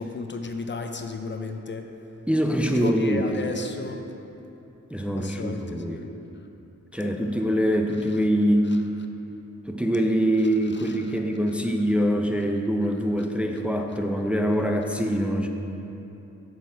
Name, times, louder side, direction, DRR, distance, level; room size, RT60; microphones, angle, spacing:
voice 1, 0.0-1.9 2.7-4.0 5.1-6.1 7.0-7.5, left 3 dB, 40° left, 5 dB, 0.6 m, -33 dB
voice 2, 2.3-3.2 4.9-6.0 6.9-8.7 9.6-15.5, equal, 5° right, 3 dB, 0.5 m, -24 dB
6.9 x 6.3 x 4.6 m, 2.9 s
cardioid pair, 60°, 29 cm